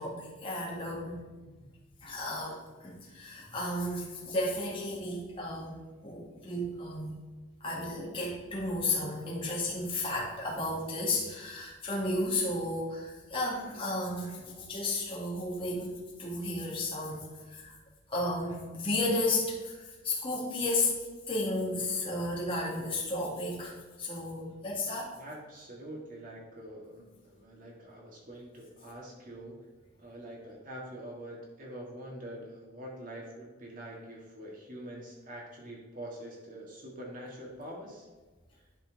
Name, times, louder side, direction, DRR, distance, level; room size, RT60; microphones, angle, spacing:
voice 1, 0.0-1.6 2.0-5.8 6.0-7.1 7.6-17.7 18.1-21.0 21.3-25.1, left 2 dB, 25° left, -4 dB, 2.0 m, -33 dB
voice 2, 25.1-29.6 30.0-38.1, right 1 dB, 40° right, -2 dB, 1.8 m, -45 dB
11.0 x 4.3 x 4.0 m, 1.3 s
head